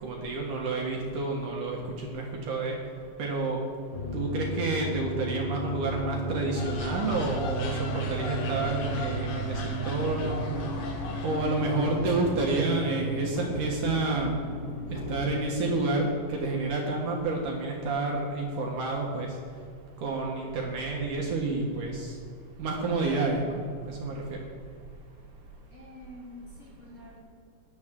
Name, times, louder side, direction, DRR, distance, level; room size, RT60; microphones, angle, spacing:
voice 1, 0.0-2.8 3.2-3.6 4.1-10.5 11.2-14.4 14.9-19.3 20.0-22.1 22.6-24.4, right 3 dB, 65° right, -1 dB, 2.7 m, -29 dB
sound 1, 3.9-15.4, right 1 dB, 60° left, 2.8 m, -34 dB
sound 2, 6.5-12.5, left 2 dB, 90° left, 3.5 m, -37 dB
voice 2, 25.7-27.2, left 1 dB, 25° left, -6 dB, 3.1 m, -47 dB
17.5 x 11.5 x 3.7 m, 2.2 s
omnidirectional pair, 4.3 m